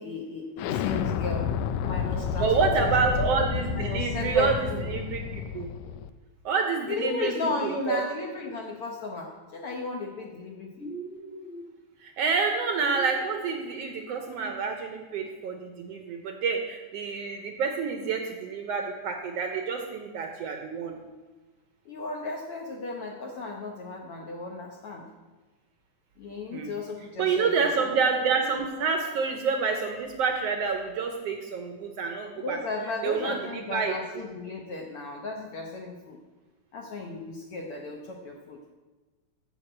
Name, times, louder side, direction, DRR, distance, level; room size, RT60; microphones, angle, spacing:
voice 1, 0.0-1.5 1.8-2.5 2.8-3.2 3.7-4.9 6.9-10.9 21.8-25.1 26.2-27.7 32.4-36.2 36.7-38.6, left 3 dB, 65° left, 1 dB, 1.4 m, -35 dB
Explosion, 0.6-6.1, left 8 dB, 85° left, 1.5 m, -30 dB
voice 2, 2.4-5.7 6.5-8.0 12.0-20.9 26.5-26.7 27.2-32.6 33.0-34.0, right 5 dB, 70° right, 4 dB, 1.6 m, -28 dB
sound 1, 10.7-11.7 12.8-13.7, right 2 dB, ahead, 0.5 m, -39 dB
9.1 x 6.4 x 7.7 m, 1.3 s
omnidirectional pair, 3.5 m